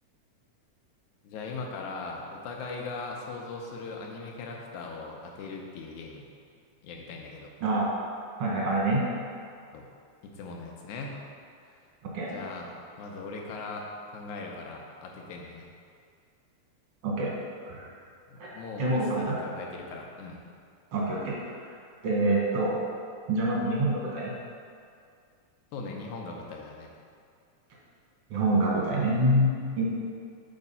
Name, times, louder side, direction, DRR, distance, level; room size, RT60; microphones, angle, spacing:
voice 1, 1.2-6.3 6.8-7.5 9.7-9.9 10.2-11.2 11.7-11.8 12.2-15.7 18.3-20.4 25.7-26.9, left 3 dB, 80° left, 0 dB, 2.1 m, -39 dB
voice 2, 7.6-7.9 8.4-9.0 12.1-12.3 17.0-17.4 17.7-17.8 18.4-18.5 18.8-19.4 20.9-21.4 22.0-22.8 23.3-24.3 28.3-29.8, right 1 dB, 60° right, -4 dB, 2.1 m, -26 dB
5.0 x 4.7 x 5.5 m, 2.3 s
omnidirectional pair, 3.4 m